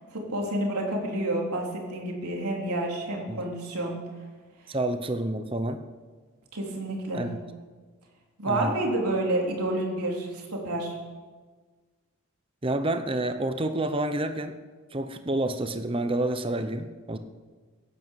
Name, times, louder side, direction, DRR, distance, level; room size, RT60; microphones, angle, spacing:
voice 1, 0.1-4.0 6.5-7.2 8.4-10.9, right 1 dB, 90° right, -1 dB, 3.7 m, -29 dB
voice 2, 4.7-5.8 7.1-7.3 8.4-8.9 12.6-14.6 14.9-17.2, right 1 dB, 25° right, 9 dB, 0.7 m, -29 dB
17.0 x 11.0 x 7.4 m, 1.4 s
head